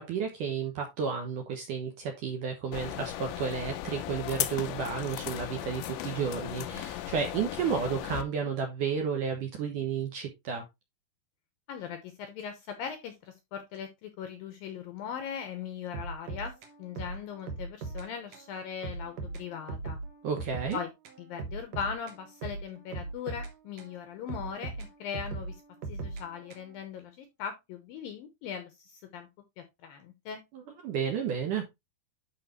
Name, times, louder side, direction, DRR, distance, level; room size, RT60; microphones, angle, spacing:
voice 1, 0.0-10.7 20.2-20.8 30.5-31.7, right 6 dB, 65° right, 2.1 m, -32 dB
sound 1, 2.7-8.2, left 14 dB, 90° left, 3.0 m, -36 dB
voice 2, 11.7-16.5 16.8-20.0 20.7-20.9 21.2-25.6 25.9-29.3 29.6-30.4, left 7 dB, 75° left, 2.2 m, -39 dB
sound 2, 15.9-18.1 18.3-18.5 18.8-20.8 21.0-23.9 24.3-26.8, right 3 dB, 85° right, 1.4 m, -39 dB
11.5 x 4.9 x 3.1 m
omnidirectional pair, 5.2 m